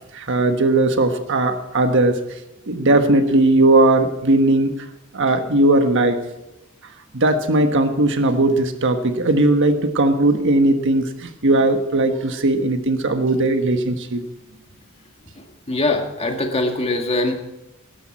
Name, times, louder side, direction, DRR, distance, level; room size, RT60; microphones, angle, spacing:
voice 1, 0.1-2.2 2.7-4.7 5.1-6.2 7.1-14.2, right 2 dB, 60° right, 7 dB, 1.4 m, -18 dB
voice 2, 15.4-17.4, left 2 dB, 30° left, 3 dB, 2.0 m, -22 dB
17.5 x 12.5 x 4.4 m, 0.92 s
head